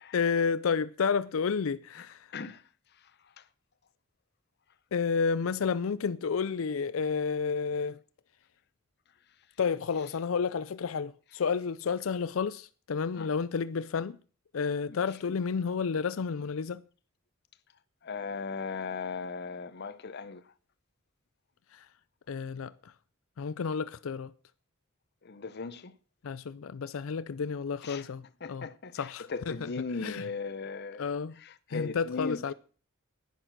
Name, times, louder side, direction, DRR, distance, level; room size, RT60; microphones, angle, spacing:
voice 1, 0.1-2.3 4.9-8.0 9.6-14.2 14.5-16.8 21.7-21.9 22.3-22.9 23.4-24.3 26.2-28.7 28.9-29.7 30.0-30.3 31.0-31.4 31.7-32.5, left 5 dB, 90° left, 0.5 m, -31 dB
voice 2, 18.0-20.4 25.2-25.9 27.8-28.0 28.4-31.1 31.4-32.4, left 4 dB, 55° left, 0.7 m, -37 dB
10.5 x 10.5 x 6.1 m
head